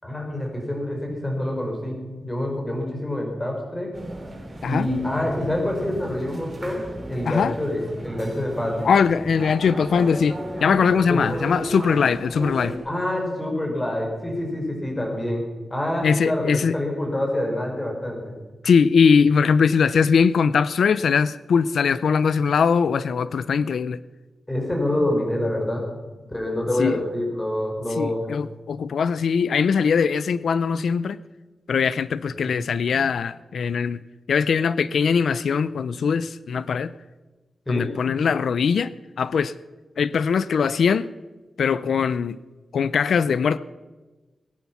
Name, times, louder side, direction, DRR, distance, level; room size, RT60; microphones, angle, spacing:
voice 1, 0.0-3.9 4.6-8.9 11.1-11.2 12.8-15.4 15.7-18.3 24.5-25.9 26.3-28.3 32.3-32.5 37.7-37.9, left 1 dB, 15° left, 1 dB, 5.0 m, -26 dB
sound 1, 3.9-12.8, right 1 dB, 35° right, 6.5 m, -35 dB
voice 2, 8.8-12.7 16.0-16.8 18.6-24.0 26.8-27.0 28.0-31.2 31.7-34.0 34.3-36.9 37.7-38.9 39.2-39.5 40.0-41.1 41.6-42.4 42.7-43.6, left 6 dB, 85° left, 16 dB, 0.4 m, -21 dB
21.0 x 10.5 x 5.9 m, 1.2 s
wide cardioid pair, 105°, 0 cm